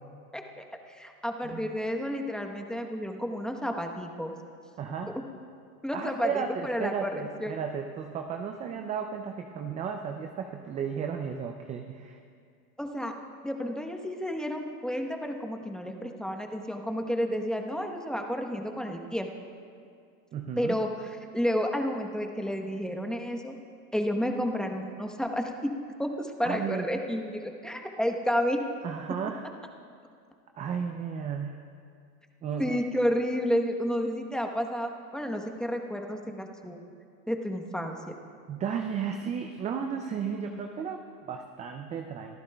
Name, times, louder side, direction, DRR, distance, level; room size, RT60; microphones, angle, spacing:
voice 1, 0.3-4.3 5.8-7.1 7.4-7.5 12.8-13.1 13.4-19.3 20.6-20.9 21.3-23.5 23.9-25.7 26.0-28.6 32.6-36.8 37.3-38.0, equal, ahead, 3 dB, 1.0 m, -31 dB
voice 2, 4.8-5.1 5.9-12.2 20.3-20.8 26.4-26.9 28.8-29.5 30.6-31.6 32.4-32.8 38.5-42.4, right 7 dB, 15° right, 5 dB, 0.4 m, -34 dB
24.0 x 14.5 x 2.3 m, 2.3 s
hypercardioid pair, 105°, 47 cm